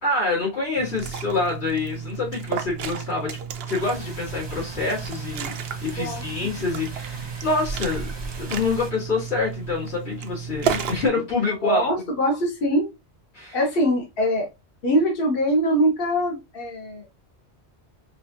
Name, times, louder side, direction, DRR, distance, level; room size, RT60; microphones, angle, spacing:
voice 1, 0.0-3.4 3.7-8.1 8.4-11.9 13.3-13.6, left 3 dB, 75° left, 2.4 m, -26 dB
Liquid, 0.8-11.1, right 7 dB, 70° right, 0.8 m, -33 dB
sound 1, 3.8-8.9, right 2 dB, 30° right, 0.7 m, -38 dB
voice 2, 6.0-6.5 11.6-12.9 13.5-14.5 14.8-17.1, equal, 60° left, 1.3 m, -23 dB
4.7 x 2.4 x 2.7 m
omnidirectional pair, 1.1 m